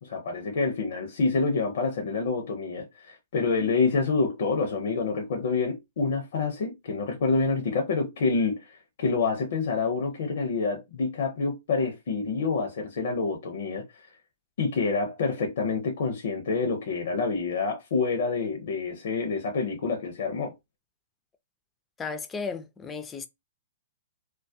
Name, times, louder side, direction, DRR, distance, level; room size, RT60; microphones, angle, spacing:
voice 1, 0.0-13.9 14.6-20.5, left 4 dB, 60° left, 0.6 m, -27 dB
voice 2, 22.0-23.3, left 5 dB, 15° left, 0.4 m, -34 dB
2.2 x 2.1 x 2.6 m
hypercardioid pair, 120°, 0 cm